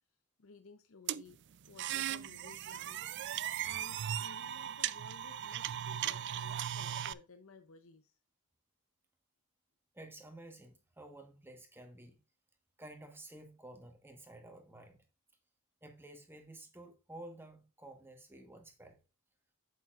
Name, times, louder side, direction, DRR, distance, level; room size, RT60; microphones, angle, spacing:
voice 1, 0.4-1.4 1.6-3.0 3.4-8.2, left 4 dB, 65° left, 0.7 m, -57 dB
sound 1, 1.1-7.1, right 11 dB, 55° right, 0.4 m, -38 dB
voice 2, 9.9-12.2 12.8-15.0 15.8-19.0, right 1 dB, 10° right, 1.3 m, -52 dB
8.9 x 8.3 x 2.5 m
head